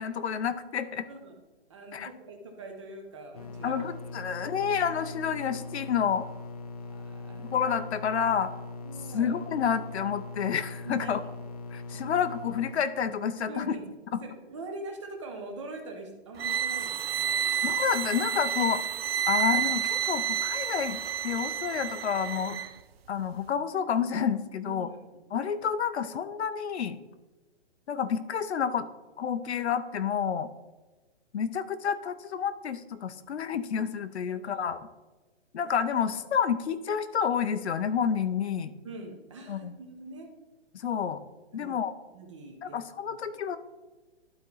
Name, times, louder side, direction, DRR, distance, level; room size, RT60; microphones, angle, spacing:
voice 1, 0.0-1.1 1.9-2.1 3.6-6.2 7.4-8.5 9.1-11.2 11.7-13.7 14.1-14.2 17.6-18.8 19.3-22.6 23.1-24.9 25.3-27.0 27.9-28.9 29.2-30.5 31.3-34.8 35.5-38.7 39.5-39.7 40.7-41.2 41.5-41.9 42.6-43.6, left 7 dB, 75° left, 12 dB, 0.7 m, -29 dB
voice 2, 1.7-3.7 4.5-4.6 6.8-7.6 8.8-9.4 10.8-11.1 13.5-13.9 14.2-17.4 24.6-24.9 25.1-25.2 34.3-34.6 38.8-40.3 41.5-41.8 42.1-42.8 43.1-43.2, right 2 dB, 25° right, 3 dB, 0.9 m, -43 dB
sound 1, 3.3-12.7, left 2 dB, 35° left, 0.5 m, -41 dB
sound 2, 16.4-22.7, right 9 dB, 65° right, 0.5 m, -30 dB
11.5 x 4.4 x 3.9 m, 1.2 s
hypercardioid pair, 175°, 33 cm